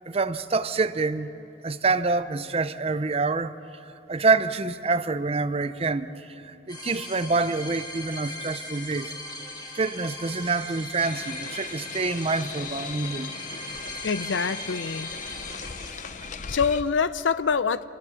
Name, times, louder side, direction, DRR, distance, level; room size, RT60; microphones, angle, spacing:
voice 1, 0.1-1.3 1.6-3.5 4.1-9.1 9.8-13.3, right 3 dB, 30° right, 12 dB, 0.6 m, -26 dB
sound 1, 6.7-16.6, left 1 dB, 20° left, 2.1 m, -39 dB
sound 2, 11.0-16.8, left 5 dB, 40° left, 0.7 m, -39 dB
voice 2, 14.0-15.1 16.5-17.9, left 5 dB, 80° left, 15 dB, 0.6 m, -25 dB
25.5 x 21.5 x 7.0 m, 2.9 s
head